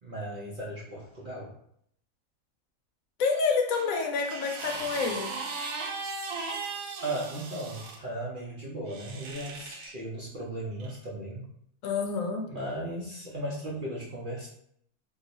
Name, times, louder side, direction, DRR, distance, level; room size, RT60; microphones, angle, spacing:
voice 1, 0.0-1.5 7.0-11.5 12.5-14.5, right 1 dB, 55° right, -5 dB, 0.6 m, -36 dB
voice 2, 3.2-5.4 11.8-12.5, left 4 dB, 75° left, 3 dB, 1.0 m, -28 dB
sound 1, 3.7-8.0 8.9-9.9 10.8-11.0, right 4 dB, 80° right, 1.1 m, -37 dB
2.6 x 2.3 x 3.9 m, 0.68 s
omnidirectional pair, 1.5 m